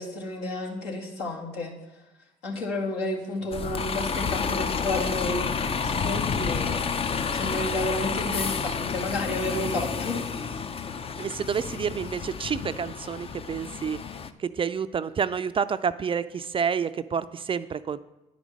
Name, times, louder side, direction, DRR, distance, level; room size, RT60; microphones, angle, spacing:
voice 1, 0.0-1.7 2.4-7.0 7.3-10.2, left 2 dB, 75° left, -2 dB, 2.1 m, -31 dB
Bus, 3.5-14.3, left 5 dB, 35° left, 0.6 m, -30 dB
voice 2, 11.2-14.0 14.4-18.0, right 7 dB, 30° right, 13 dB, 0.4 m, -29 dB
9.9 x 5.1 x 6.3 m, 0.98 s
hypercardioid pair, 65°, 18 cm